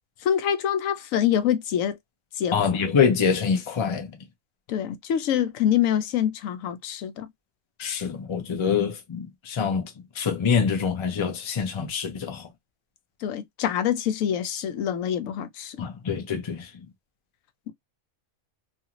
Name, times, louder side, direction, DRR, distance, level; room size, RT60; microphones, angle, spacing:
voice 1, 0.2-2.0 2.4-2.5 4.7-7.3 13.2-15.9 17.7-17.8, left 10 dB, 85° left, 1.0 m, -25 dB
voice 2, 2.5-4.2 7.8-12.5 15.8-16.9, left 6 dB, 35° left, 0.5 m, -25 dB
2.6 x 2.5 x 2.8 m
omnidirectional pair, 1.4 m